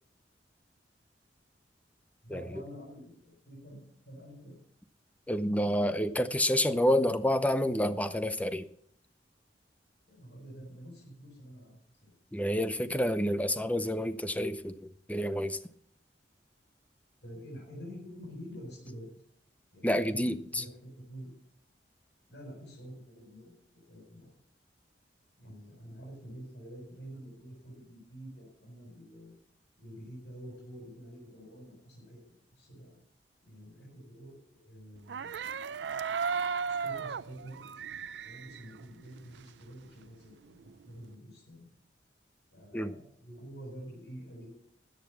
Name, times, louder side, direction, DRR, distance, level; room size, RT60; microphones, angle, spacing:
voice 1, 2.2-4.5 10.1-12.1 12.8-12.9 17.2-19.1 19.7-21.3 22.3-24.3 25.4-29.3 29.8-32.2 32.5-33.0 33.4-35.5 36.7-37.6 38.2-41.7 42.5-44.5, equal, 80° left, -4 dB, 6.6 m, -48 dB
voice 2, 5.3-8.7 12.3-15.6 19.8-20.6 42.7-42.9, equal, 10° left, 12 dB, 0.7 m, -29 dB
sound 1, 35.0-39.7 40.0-41.1, right 6 dB, 80° right, 0.5 m, -36 dB
13.5 x 8.3 x 7.2 m, 0.66 s
head